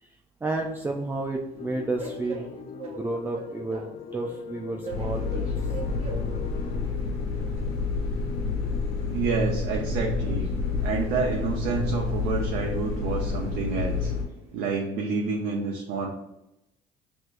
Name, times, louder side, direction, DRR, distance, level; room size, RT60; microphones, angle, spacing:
voice 1, 0.0-2.5 2.9-3.9 4.1-5.7, right 2 dB, 15° right, 1 dB, 0.4 m, -31 dB
Train, 0.6-14.5, right 3 dB, 40° right, 1.0 m, -45 dB
sound 1, 1.5-6.9, left 6 dB, 45° left, 0.4 m, -41 dB
sound 2, 4.9-14.2, left 4 dB, 80° left, 1.1 m, -29 dB
voice 2, 9.1-10.5 10.8-14.1 14.5-16.1, right 4 dB, 75° right, 0 dB, 0.6 m, -28 dB
5.9 x 2.9 x 2.5 m, 0.88 s
supercardioid pair, 85°, 15 cm